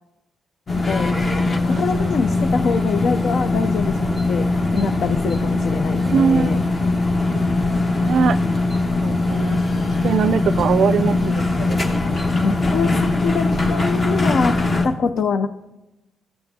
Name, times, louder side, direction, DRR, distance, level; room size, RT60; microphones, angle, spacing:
sound 1, 0.7-14.9, left 2 dB, 35° left, 1.0 m, -21 dB
voice 1, 0.9-1.2 1.6-4.4 4.7-6.6 12.4-14.6 14.8-15.5, left 5 dB, 65° left, 8 dB, 0.4 m, -24 dB
voice 2, 6.0-6.6 7.2-7.4 8.0-8.4 9.0-9.6 10.0-12.0, right 6 dB, 65° right, 16 dB, 0.3 m, -21 dB
14.5 x 6.7 x 2.7 m, 0.97 s
cardioid pair, 85°, 0 cm